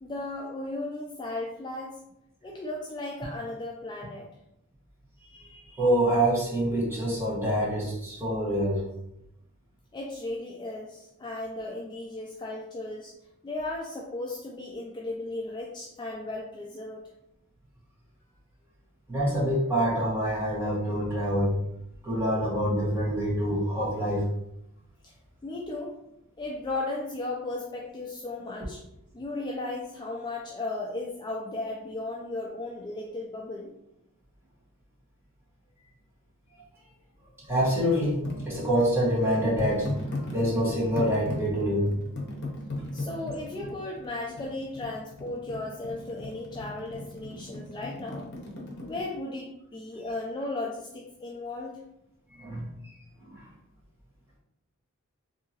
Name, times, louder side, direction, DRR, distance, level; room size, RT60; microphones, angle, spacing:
voice 1, 0.0-2.0 2.4-4.3 9.9-13.1 13.4-17.0 25.0-25.1 25.4-25.9 26.4-28.8 29.1-33.7 42.9-48.3 48.8-51.8, left 2 dB, 20° left, -2 dB, 0.3 m, -35 dB
voice 2, 5.4-8.8 19.1-21.6 22.0-24.2 37.5-39.9 40.3-41.9 42.8-42.9 52.4-52.7 53.3-53.5, equal, 10° right, -7 dB, 1.2 m, -26 dB
sound 1, 38.2-49.0, left 2 dB, 50° left, 0.8 m, -37 dB
3.6 x 2.7 x 2.8 m, 0.83 s
head